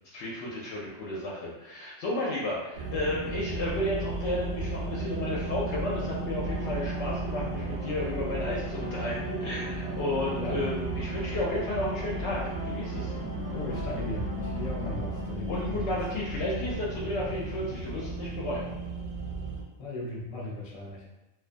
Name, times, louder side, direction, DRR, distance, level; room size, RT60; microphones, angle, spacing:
voice 1, 0.1-13.1 15.5-18.6, left 1 dB, 70° left, -5 dB, 0.8 m, -33 dB
sound 1, 2.7-19.6, right 2 dB, 65° right, 0.7 m, -34 dB
sound 2, 6.3-15.3, equal, 5° left, 0.8 m, -43 dB
voice 2, 10.3-10.7 13.5-16.0 17.0-17.2 19.8-21.0, left 2 dB, 45° left, -3 dB, 0.5 m, -37 dB
2.3 x 2.2 x 2.5 m, 1.0 s
omnidirectional pair, 1.2 m